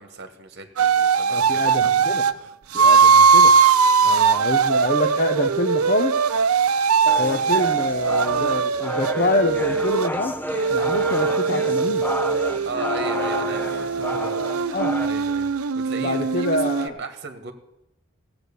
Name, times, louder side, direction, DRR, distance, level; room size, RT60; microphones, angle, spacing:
voice 1, 0.0-1.9 4.1-4.4 12.6-17.5, right 4 dB, 50° right, 7 dB, 1.4 m, -36 dB
sound 1, 0.8-2.3 2.7-10.1 10.5-16.9, right 5 dB, 85° right, 0.6 m, -20 dB
voice 2, 1.3-2.2 2.7-3.5 4.0-6.2 7.2-10.4 10.7-12.0 14.7-15.0 16.0-17.0, left 2 dB, 40° left, 6 dB, 0.8 m, -26 dB
sound 2, 7.1-15.1, equal, 10° left, 0.5 m, -31 dB
Musical instrument, 7.6-15.6, equal, 25° right, 1.3 m, -48 dB
15.5 x 7.8 x 6.8 m, 0.87 s
head